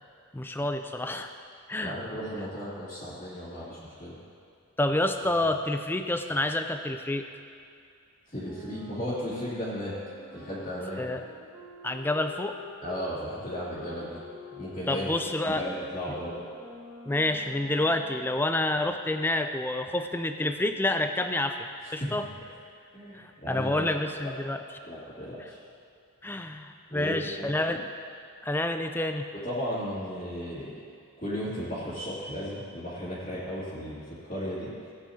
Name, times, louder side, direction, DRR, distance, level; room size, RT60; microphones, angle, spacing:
voice 1, 0.3-1.3 1.7-2.0 4.8-7.3 11.0-11.2 11.8-12.6 14.9-15.6 17.1-21.6 21.9-22.3 23.1-24.6 26.2-27.9 28.4-29.3, left 1 dB, 10° left, 7 dB, 0.4 m, -28 dB
voice 2, 1.8-4.2 8.3-9.9 10.3-11.2 12.8-14.2 14.5-15.1 15.5-16.3 21.8-22.1 22.9-23.9 24.2-24.3 24.8-25.6 26.9-27.7 29.4-30.7 31.2-34.7, equal, 35° left, -12 dB, 2.4 m, -35 dB
sound 1, 8.4-13.1 13.5-18.5, equal, 20° right, 1.5 m, -47 dB
17.5 x 9.1 x 2.8 m, 2.4 s
head